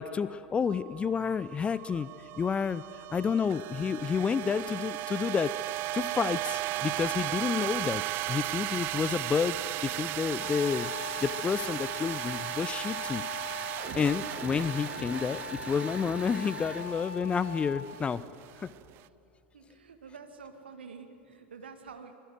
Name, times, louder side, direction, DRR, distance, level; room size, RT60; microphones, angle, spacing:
voice 1, 0.0-2.1 2.4-2.8 3.1-5.5 5.9-8.0 8.3-10.9 11.2-13.2 13.9-18.2 18.6-18.7, left 6 dB, 20° left, 17 dB, 0.6 m, -30 dB
sound 1, 0.7-19.0, right 17 dB, 40° right, 0.5 m, -36 dB
sound 2, 8.5-16.9, right 6 dB, 20° right, 0.8 m, -46 dB
Wind instrument woodwind instrument, 10.4-18.0, left 7 dB, 60° left, 1.1 m, -42 dB
voice 2, 19.5-22.1, right 5 dB, 70° right, 6 dB, 2.1 m, -48 dB
25.0 x 22.0 x 7.9 m, 2.8 s
figure-of-eight pair, 85°, 6 cm